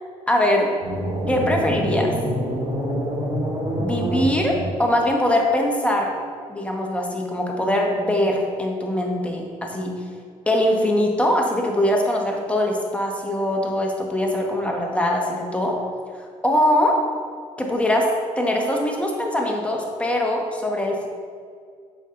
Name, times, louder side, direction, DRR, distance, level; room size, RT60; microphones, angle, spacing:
voice 1, 0.3-0.7 1.3-2.1 3.8-6.1 6.5-9.9 10.5-15.8 16.4-17.0 17.6-18.1 18.4-21.1, left 1 dB, 10° left, 0 dB, 1.3 m, -22 dB
sound 1, 0.8-5.1, right 1 dB, 35° right, 1.8 m, -26 dB
7.2 x 5.8 x 3.8 m, 2.1 s
cardioid pair, 90°, 14 cm